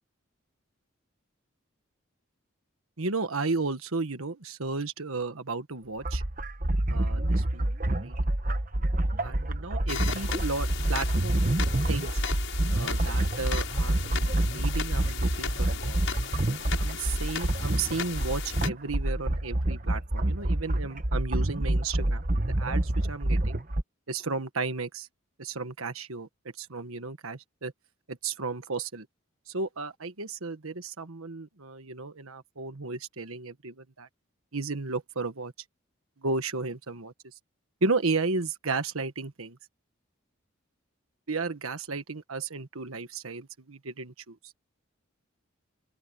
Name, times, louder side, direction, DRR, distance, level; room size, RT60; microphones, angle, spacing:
voice 1, 3.0-6.2 6.9-7.6 8.0-8.1 9.2-11.4 11.9-12.2 12.7-16.1 16.7-23.6 24.1-25.1 25.4-26.3 26.6-27.7 28.1-29.1 29.5-34.1 34.5-35.5 36.2-37.1 37.8-39.6 41.3-44.4, right 3 dB, 85° right, 1.5 m, -34 dB
sound 1, 6.0-23.8, right 1 dB, 40° right, 1.2 m, -27 dB
sound 2, 9.9-18.7, left 7 dB, 65° left, 7.2 m, -37 dB
open air
head